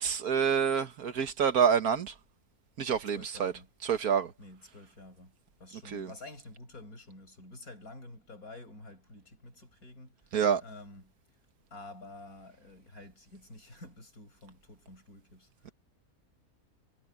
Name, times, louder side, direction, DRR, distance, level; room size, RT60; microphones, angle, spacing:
voice 1, 0.0-2.2 2.8-3.5 3.8-4.3 5.9-6.1 10.3-10.6, right 7 dB, 80° right, 1.8 m, -27 dB
voice 2, 3.1-3.7 4.4-5.3 5.6-11.1 11.7-15.7, left 2 dB, 75° left, 8.0 m, -50 dB
omnidirectional pair, 1.6 m